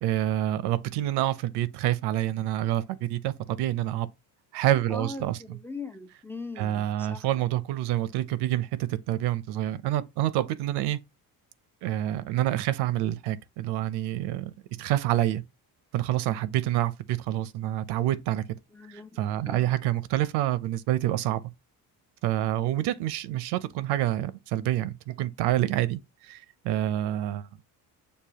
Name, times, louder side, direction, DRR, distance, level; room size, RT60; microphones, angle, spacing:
voice 1, 0.0-4.1 4.5-5.4 6.6-11.0 11.8-14.5 14.8-15.4 15.9-18.4 18.9-21.4 22.2-27.5, right 13 dB, 85° right, 0.6 m, -27 dB
voice 2, 4.9-7.5 18.7-19.7, left 3 dB, 5° left, 0.3 m, -41 dB
6.7 x 2.7 x 2.9 m
cardioid pair, 135°, 39 cm